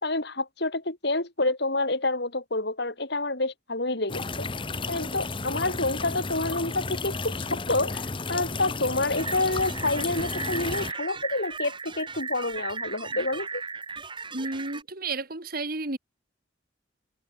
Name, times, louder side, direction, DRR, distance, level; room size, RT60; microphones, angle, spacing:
voice 1, 0.0-4.5 4.9-13.6, left 2 dB, 60° left, 4.7 m, -28 dB
sound 1, 4.1-10.9, left 3 dB, 25° left, 1.2 m, -33 dB
sound 2, 9.2-14.8, right 4 dB, 25° right, 3.8 m, -36 dB
voice 2, 14.3-16.0, right 3 dB, 50° right, 2.3 m, -32 dB
head